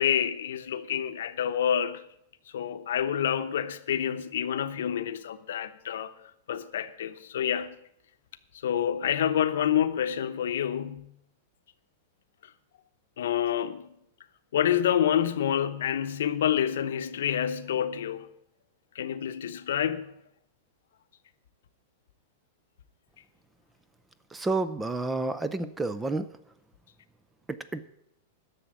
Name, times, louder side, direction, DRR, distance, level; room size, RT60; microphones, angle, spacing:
voice 1, 0.0-2.0 2.5-6.1 6.5-7.8 8.6-11.1 13.2-13.9 14.5-18.3 18.9-20.1, left 9 dB, 80° left, 0.9 m, -28 dB
voice 2, 24.3-26.3 27.5-27.8, right 3 dB, 5° right, 0.4 m, -30 dB
11.5 x 7.0 x 8.9 m
supercardioid pair, 175°, 0 cm